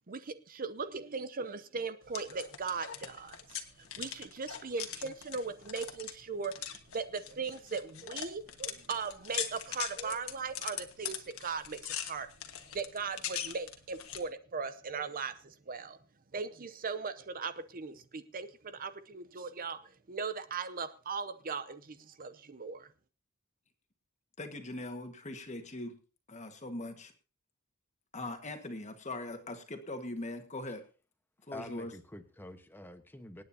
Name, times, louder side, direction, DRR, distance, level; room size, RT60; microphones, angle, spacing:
voice 1, 0.1-12.3 12.7-16.0 16.3-22.9, right 5 dB, 40° right, 12 dB, 0.7 m, -39 dB
sound 1, 2.0-14.2, left 10 dB, 70° left, 1.5 m, -42 dB
voice 2, 24.4-26.0 26.3-27.1 28.1-30.9 31.5-31.9, left 2 dB, 35° left, 6 dB, 1.6 m, -41 dB
voice 3, 31.5-33.4, left 1 dB, 10° left, 8 dB, 1.1 m, -46 dB
25.5 x 9.3 x 2.8 m, 0.35 s
head